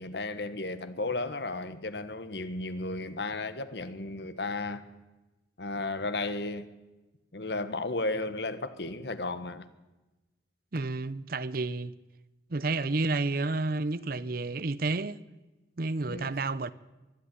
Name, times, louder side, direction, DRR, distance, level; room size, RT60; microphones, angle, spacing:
voice 1, 0.0-4.8 5.6-6.7 7.3-9.7 16.1-16.3, left 2 dB, 65° left, 1.4 m, -34 dB
voice 2, 10.7-11.9 12.5-15.2 15.8-16.7, right 3 dB, 55° right, 0.7 m, -30 dB
22.0 x 12.0 x 10.0 m
head